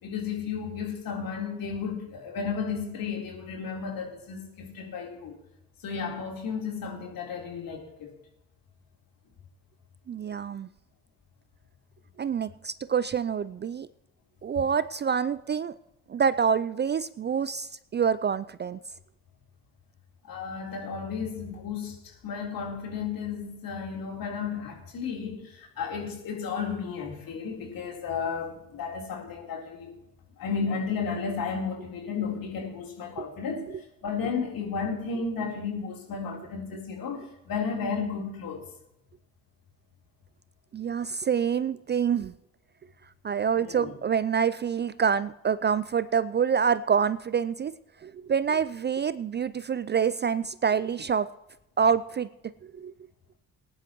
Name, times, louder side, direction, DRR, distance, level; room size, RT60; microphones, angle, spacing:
voice 1, 0.0-5.3 5.8-8.1 20.3-30.0 30.4-38.7 43.6-43.9, left 5 dB, 55° left, 3.9 m, -33 dB
voice 2, 10.1-10.7 12.2-13.9 14.4-15.7 16.1-18.8 40.7-42.3 43.2-47.7 48.0-51.3 51.8-52.3 52.6-52.9, right 7 dB, 25° right, 0.4 m, -26 dB
20.5 x 10.5 x 3.1 m
hypercardioid pair, 55°, 40 cm